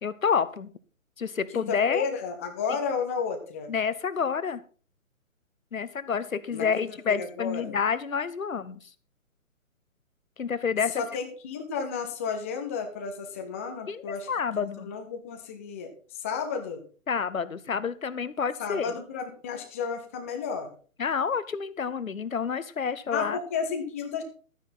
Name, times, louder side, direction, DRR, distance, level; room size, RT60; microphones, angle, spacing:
voice 1, 0.0-0.7 1.2-2.0 3.7-4.6 5.7-8.8 10.4-11.0 13.9-14.9 17.1-19.0 21.0-23.4, left 6 dB, 70° left, 16 dB, 1.0 m, -29 dB
voice 2, 1.5-3.7 6.5-7.8 11.0-14.3 14.8-15.9 16.2-16.8 18.6-20.7 23.1-24.2, left 5 dB, 10° left, 5 dB, 0.6 m, -32 dB
12.5 x 9.3 x 4.1 m, 0.40 s
figure-of-eight pair, 135°, 42 cm